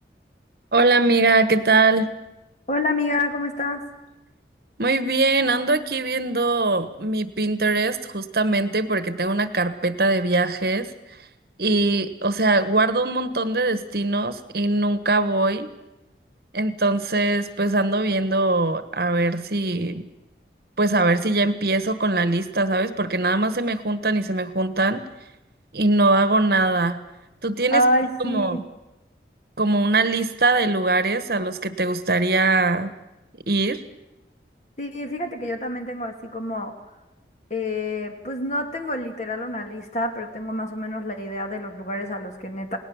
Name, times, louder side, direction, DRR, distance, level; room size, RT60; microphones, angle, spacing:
voice 1, 0.7-2.1 4.8-10.9 11.6-15.7 16.5-20.1 20.8-25.0 25.7-27.0 27.4-27.8 28.2-28.6 29.6-32.9 33.5-33.8, right 2 dB, 60° right, 11 dB, 1.3 m, -21 dB
voice 2, 2.7-3.8 27.7-28.6 34.8-36.7 37.5-42.8, left 1 dB, 40° left, 4 dB, 2.6 m, -27 dB
28.5 x 18.5 x 7.2 m, 0.99 s
head